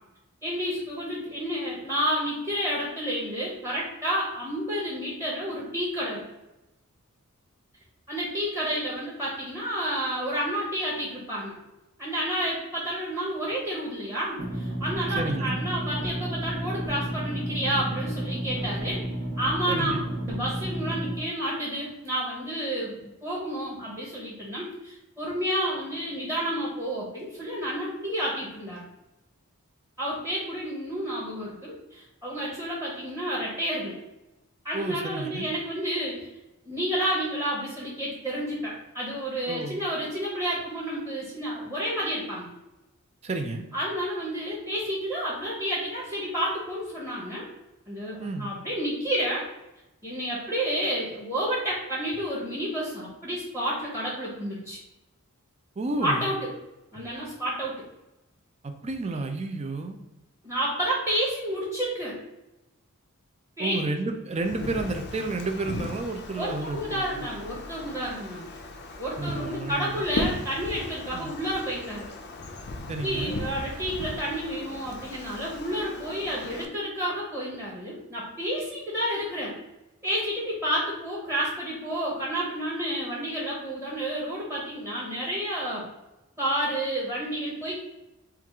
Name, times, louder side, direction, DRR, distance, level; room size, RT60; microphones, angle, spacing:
voice 1, 0.4-6.2 8.1-11.6 12.0-19.0 19.4-28.8 30.0-33.9 34.6-36.3 36.6-42.5 43.7-47.5 47.9-49.5 50.0-54.8 56.0-56.4 56.9-57.7 60.4-62.2 63.6-63.8 66.4-68.5 69.0-72.1 73.0-79.6 80.0-85.8 86.4-87.7, equal, 10° right, -5 dB, 1.0 m, -30 dB
sound 1, 14.4-21.1, right 1 dB, 50° right, 1.0 m, -32 dB
voice 2, 15.1-15.6 19.7-20.0 34.7-35.5 39.5-39.8 43.2-43.6 48.2-48.5 55.8-56.3 58.6-60.0 63.6-67.2 69.2-70.0 71.1-71.4 72.9-73.3, right 2 dB, 30° right, 5 dB, 0.4 m, -31 dB
Wind, 64.3-76.7, left 2 dB, 50° left, 0.5 m, -37 dB
4.4 x 2.4 x 3.5 m, 0.95 s
head